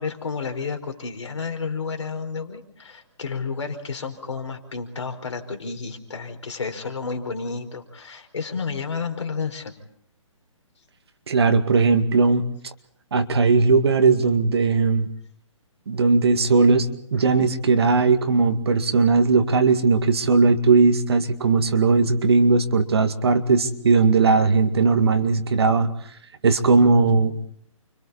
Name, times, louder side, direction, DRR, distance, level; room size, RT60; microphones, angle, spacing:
voice 1, 0.0-9.7, left 5 dB, 60° left, 5 dB, 5.0 m, -31 dB
voice 2, 11.3-12.5 13.1-15.1 15.9-25.9 26.4-27.4, right 4 dB, 50° right, 7 dB, 2.1 m, -18 dB
30.0 x 26.0 x 4.3 m, 0.65 s
hypercardioid pair, 175°, 17 cm